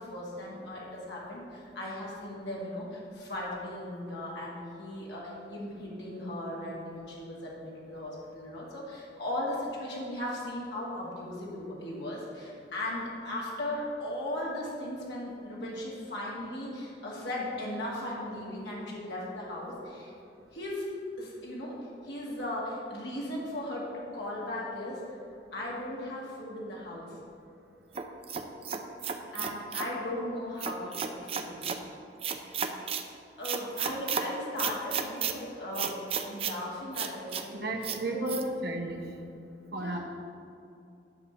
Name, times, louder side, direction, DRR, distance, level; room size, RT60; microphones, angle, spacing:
voice 1, 0.0-20.1 20.5-20.9 21.2-21.7 22.0-25.0 25.5-27.2 29.3-31.6 33.4-37.6 38.1-38.4 39.7-40.0, left 1 dB, 85° left, -5 dB, 1.9 m, -37 dB
sound 1, 28.0-29.9 30.6-31.8 32.2-33.1 33.4-34.3 34.6-35.3 35.8-36.6 36.9-37.4 37.8-38.0 38.3-38.4, right 7 dB, 35° right, 0.4 m, -33 dB
voice 2, 37.5-39.0 39.7-40.0, right 2 dB, 60° right, 1 dB, 0.9 m, -34 dB
10.5 x 3.6 x 6.8 m, 2.6 s
head